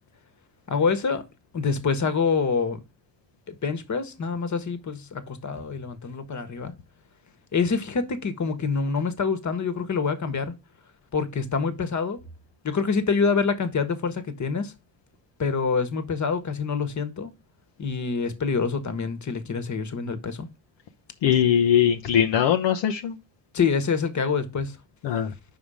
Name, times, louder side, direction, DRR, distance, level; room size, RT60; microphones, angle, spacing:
voice 1, 0.7-1.2 1.5-2.8 3.5-6.7 7.5-10.5 11.1-12.2 12.6-14.7 15.4-17.3 17.8-20.5 23.5-24.8, left 5 dB, 40° left, 1.4 m, -26 dB
voice 2, 21.2-23.2 25.0-25.3, left 9 dB, 65° left, 0.9 m, -21 dB
5.6 x 4.7 x 4.9 m
supercardioid pair, 75°, 46 cm